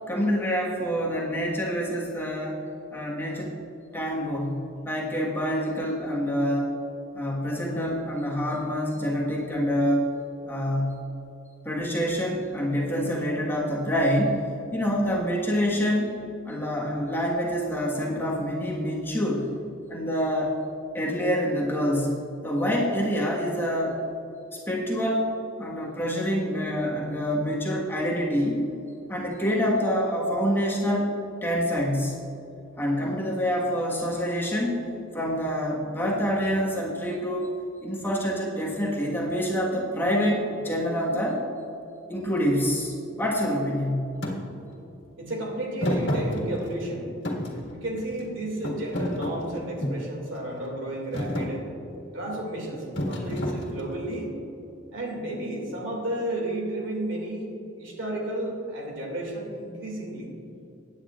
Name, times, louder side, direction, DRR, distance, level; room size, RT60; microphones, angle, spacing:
voice 1, 0.1-2.7 2.9-3.5 3.9-6.7 7.1-10.1 10.4-11.0 11.6-14.4 14.7-16.1 16.4-19.5 19.9-20.6 20.9-24.0 24.7-25.3 25.6-28.6 29.1-31.1 31.4-32.3 32.8-37.5 37.8-41.4 42.1-44.2, equal, 10° left, -3 dB, 1.4 m, -26 dB
Thump thud, 44.2-44.4 45.8-46.9 47.2-48.2 48.6-50.1 50.7-50.9 51.1-51.5 53.0-54.0, left 1 dB, 60° left, 1.8 m, -29 dB
voice 2, 45.2-47.1 47.7-51.7 52.1-54.3 54.9-57.5 57.8-60.3, right 1 dB, 70° right, 0 dB, 2.3 m, -32 dB
16.5 x 9.6 x 2.4 m, 3.0 s
head